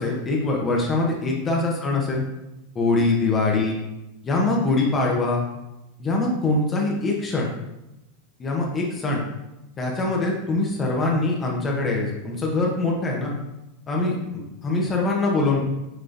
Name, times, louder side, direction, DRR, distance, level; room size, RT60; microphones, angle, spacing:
voice 1, 0.0-2.2 2.7-3.8 4.2-5.4 6.0-7.5 8.4-9.2 9.8-13.3 13.9-15.6, left 2 dB, 25° left, -1 dB, 0.9 m, -23 dB
5.9 x 3.1 x 2.6 m, 0.93 s
hypercardioid pair, 100°, 0 cm